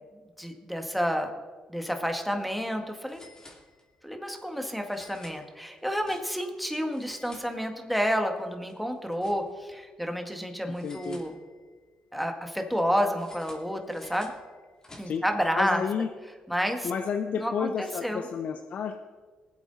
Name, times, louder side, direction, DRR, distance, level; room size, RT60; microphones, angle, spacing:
voice 1, 0.4-1.3 1.7-3.2 4.0-11.4 12.1-14.3 15.0-15.8 16.5-16.9 17.4-18.3, equal, ahead, 4 dB, 1.8 m, -30 dB
sound 1, 2.0-2.1 2.4-2.5 3.0-4.1 4.8-6.6 6.9-8.0 8.4-9.8 10.7-11.8 13.1-15.4, left 2 dB, 25° left, 2.6 m, -53 dB
voice 2, 10.8-11.2 15.0-15.2 15.6-16.1 16.8-18.9, left 6 dB, 65° left, 6 dB, 0.7 m, -31 dB
19.0 x 8.2 x 4.1 m, 1.5 s
cardioid pair, 75°, 3 cm